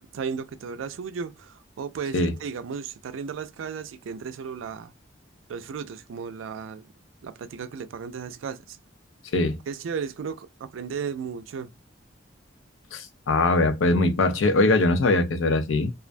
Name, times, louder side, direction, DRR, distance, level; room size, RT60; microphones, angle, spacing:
voice 1, 0.1-4.9 5.5-6.8 7.2-8.8 9.7-11.7, right 6 dB, 85° right, 0.4 m, -34 dB
voice 2, 12.9-15.9, left 2 dB, 80° left, 0.5 m, -21 dB
2.4 x 2.1 x 2.4 m
head